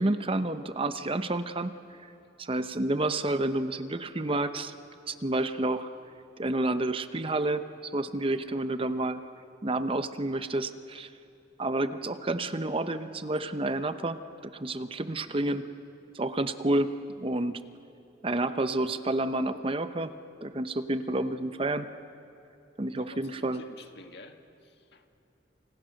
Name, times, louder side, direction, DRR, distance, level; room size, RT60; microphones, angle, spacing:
voice 1, 0.0-1.7 2.4-4.7 5.1-5.9 6.4-9.2 9.6-11.1 11.6-15.7 16.1-17.6 18.2-20.1 20.4-21.9 22.8-23.6, right 2 dB, 30° right, 11 dB, 0.8 m, -29 dB
voice 2, 23.0-25.1, left 2 dB, 65° left, 6 dB, 1.9 m, -50 dB
29.0 x 28.5 x 6.5 m, 2.7 s
head